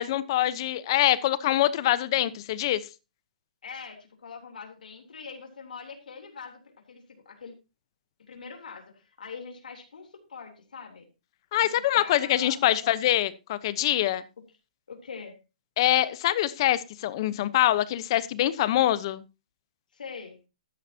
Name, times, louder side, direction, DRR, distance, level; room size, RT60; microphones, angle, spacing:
voice 1, 0.0-2.8 11.5-14.2 15.8-19.2, left 13 dB, 35° left, 16 dB, 0.9 m, -24 dB
voice 2, 3.6-7.5 8.2-11.0 11.6-12.9 14.9-15.4 19.9-20.4, left 5 dB, 85° left, 3 dB, 3.4 m, -43 dB
14.0 x 11.5 x 2.8 m, 0.28 s
hypercardioid pair, 165°, 4 cm